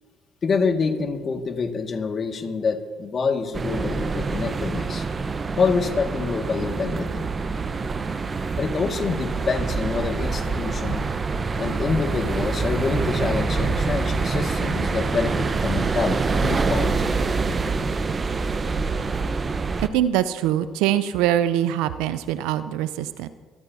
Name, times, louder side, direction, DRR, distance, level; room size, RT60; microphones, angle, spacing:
voice 1, 0.4-5.1 5.6-7.3 8.6-11.0 11.6-17.1, left 5 dB, 45° left, 5 dB, 1.9 m, -26 dB
sound 1, 3.5-19.9, right 4 dB, 35° right, 0.9 m, -25 dB
voice 2, 19.8-23.3, right 11 dB, 80° right, 13 dB, 0.6 m, -23 dB
26.5 x 13.5 x 2.8 m, 1.5 s
hypercardioid pair, 60°, 0 cm